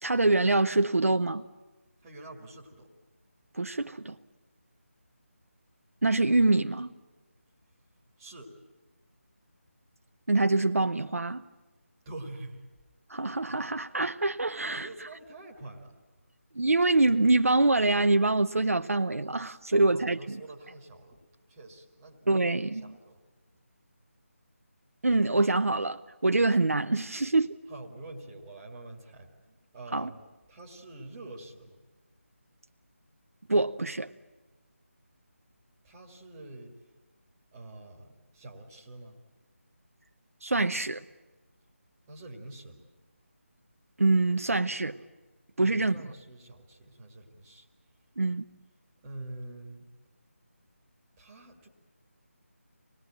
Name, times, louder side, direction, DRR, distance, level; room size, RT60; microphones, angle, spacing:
voice 1, 0.0-1.4 3.5-4.2 6.0-6.9 10.3-11.4 13.1-14.9 16.5-20.2 22.3-22.9 25.0-27.6 29.9-30.1 33.5-34.1 40.4-41.0 44.0-45.0 45.6-45.9 48.2-48.4, right 2 dB, 75° right, 0.7 m, -25 dB
voice 2, 2.0-2.9 8.2-8.6 12.1-12.6 14.7-15.9 19.7-23.2 27.7-30.2 30.5-31.8 35.8-36.7 37.5-39.2 42.1-42.8 45.6-47.7 49.0-49.9 51.2-51.7, right 2 dB, 15° right, 2.2 m, -46 dB
27.0 x 19.0 x 8.9 m
figure-of-eight pair, 160°, 8 cm